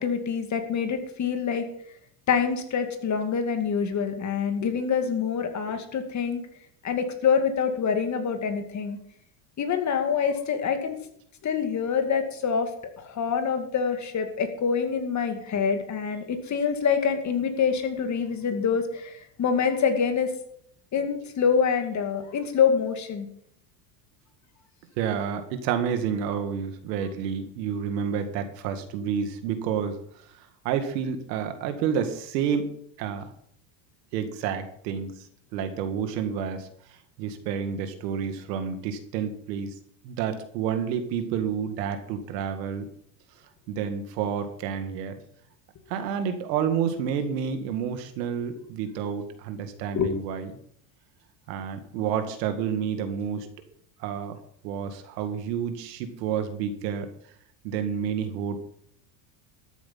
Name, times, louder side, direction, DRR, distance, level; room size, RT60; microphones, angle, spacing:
voice 1, 0.0-1.7 2.3-6.4 6.8-9.0 9.6-10.9 11.4-12.7 13.0-20.3 20.9-23.3 49.9-50.1, left 6 dB, 35° left, 6 dB, 2.4 m, -26 dB
voice 2, 25.0-30.0 30.6-32.7 33.0-33.3 34.1-35.2 35.5-36.7 37.2-39.7 40.0-42.9 43.7-45.2 45.9-50.5 51.5-53.5 54.0-54.4 54.6-57.1 57.6-58.6, right 7 dB, 85° right, 8 dB, 2.2 m, -29 dB
13.5 x 8.4 x 5.7 m, 0.67 s
supercardioid pair, 120°, 48 cm